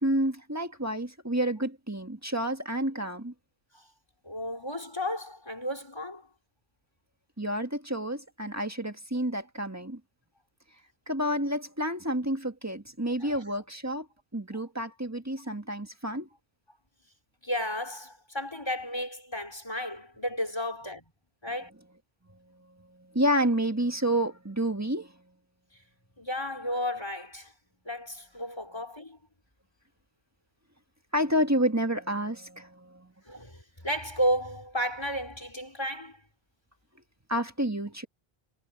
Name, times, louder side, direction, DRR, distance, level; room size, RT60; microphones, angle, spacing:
voice 1, 0.0-3.3 7.4-10.0 11.1-14.1 14.3-16.3 22.8-25.1 31.1-33.1 37.3-38.1, equal, 15° right, 1.8 m, -29 dB
voice 2, 4.2-6.3 13.2-13.4 17.4-21.0 21.4-21.7 26.2-27.5 27.9-29.2 33.3-36.2, equal, 25° left, 3.6 m, -33 dB
omnidirectional pair, 1.1 m